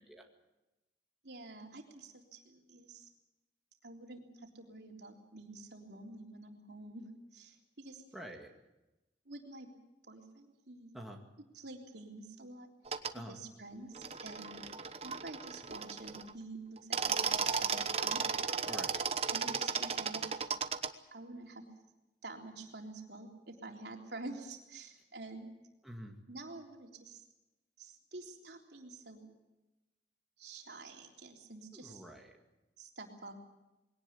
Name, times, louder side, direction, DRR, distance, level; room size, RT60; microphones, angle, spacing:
voice 1, 1.2-3.1 3.8-8.0 9.3-9.7 10.1-11.0 11.5-12.7 13.3-14.6 15.0-18.2 19.3-20.3 21.1-21.6 22.2-25.5 26.3-27.2 27.8-29.3 30.4-32.0 32.8-33.4, right 2 dB, 70° right, 1 dB, 3.6 m, -48 dB
voice 2, 8.1-8.6 10.9-11.2 13.1-13.4 18.7-19.1 25.8-26.1 31.7-32.4, equal, ahead, 0 dB, 2.0 m, -47 dB
sound 1, 12.9-13.1 14.0-16.3 16.8-20.9, right 6 dB, 35° right, 1.0 m, -35 dB
21.5 x 18.0 x 8.4 m, 1.0 s
head